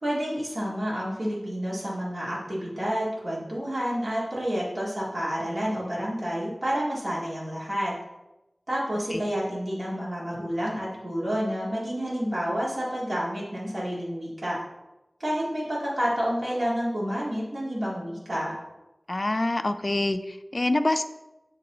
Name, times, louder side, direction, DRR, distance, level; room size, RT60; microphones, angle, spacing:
voice 1, 0.0-7.9 8.7-14.6 15.2-18.5, equal, 60° right, -6 dB, 2.0 m, -29 dB
voice 2, 19.1-21.0, left 2 dB, 45° left, 9 dB, 0.4 m, -26 dB
7.6 x 3.3 x 3.9 m, 0.96 s
wide cardioid pair, 55°, 0 cm